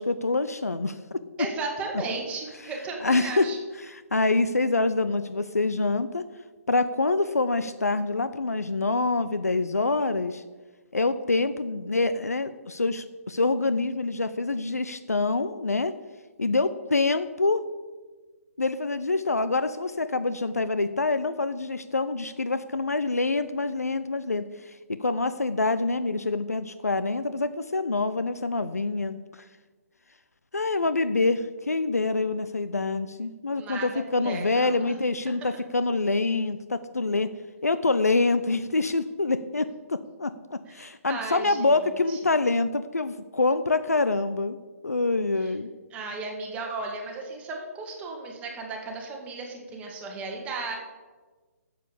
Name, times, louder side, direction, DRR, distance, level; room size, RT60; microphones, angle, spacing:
voice 1, 0.0-1.2 3.0-3.5 3.8-6.2 6.7-10.4 10.9-15.9 16.4-17.6 18.6-29.2 30.5-37.3 37.6-44.6 44.8-45.7, left 3 dB, 80° left, 12 dB, 0.6 m, -26 dB
voice 2, 1.4-3.6 33.5-35.0 40.7-41.7 42.1-42.2 45.4-45.5 45.9-50.8, right 3 dB, 15° right, 1 dB, 1.9 m, -35 dB
10.5 x 7.6 x 6.8 m, 1.3 s
figure-of-eight pair, 135°, 8 cm